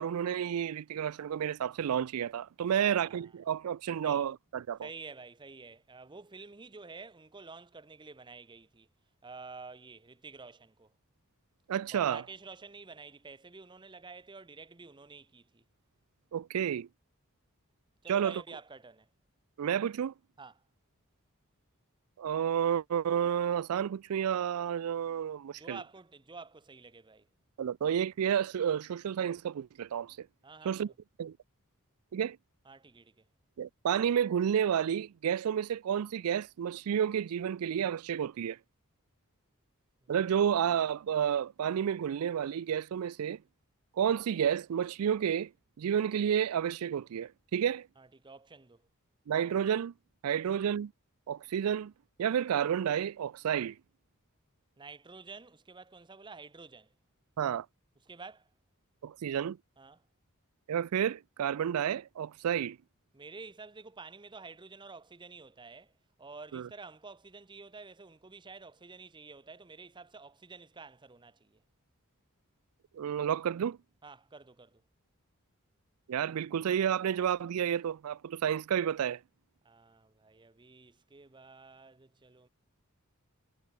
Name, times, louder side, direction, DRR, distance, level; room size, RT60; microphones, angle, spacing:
voice 1, 0.0-4.8 11.7-12.2 16.3-16.9 18.1-18.4 19.6-20.1 22.2-25.8 27.6-30.3 30.6-30.9 31.2-31.4 32.1-32.4 33.6-38.6 40.1-43.4 44.0-45.5 45.8-47.9 49.3-49.9 50.2-50.9 51.3-51.9 52.2-53.8 57.4-57.7 59.0-59.6 60.7-62.8 66.5-66.7 72.9-73.8 76.1-79.2, right 8 dB, 90° right, 0.4 m, -30 dB
voice 2, 2.8-3.3 4.0-4.3 4.8-8.9 9.2-10.9 11.9-15.6 18.0-19.1 20.4-20.6 25.5-27.3 30.4-30.9 32.7-33.2 40.0-40.1 48.0-48.8 54.8-56.9 58.1-58.5 59.8-60.0 63.1-65.9 66.2-71.6 74.0-74.8 79.6-82.5, right 4 dB, 20° right, 0.8 m, -49 dB
head